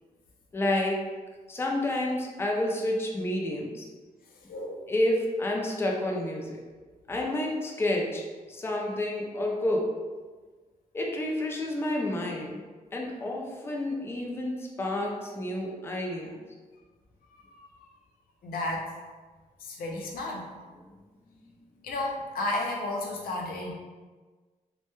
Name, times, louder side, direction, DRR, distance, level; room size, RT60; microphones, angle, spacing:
voice 1, 0.5-1.0 1.5-3.8 4.9-6.6 7.1-9.9 10.9-12.6 12.9-16.3, left 1 dB, 15° left, -1 dB, 0.4 m, -29 dB
voice 2, 4.5-4.9 17.3-17.7 18.4-18.9 19.6-20.5 21.8-23.7, left 2 dB, 90° left, -1 dB, 0.4 m, -33 dB
2.1 x 2.1 x 2.9 m, 1.4 s
wide cardioid pair, 115°, 15 cm